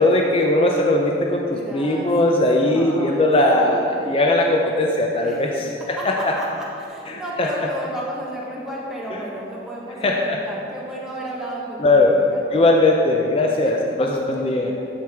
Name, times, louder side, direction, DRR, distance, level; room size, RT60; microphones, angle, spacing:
voice 1, 0.0-5.5 6.0-6.3 7.1-7.5 10.0-10.4 11.8-12.1 12.5-14.7, left 2 dB, 30° left, 0 dB, 0.5 m, -19 dB
voice 2, 1.5-4.0 5.2-12.7 13.6-14.8, equal, 5° right, -6 dB, 1.3 m, -34 dB
12.0 x 4.6 x 3.5 m, 2.8 s
head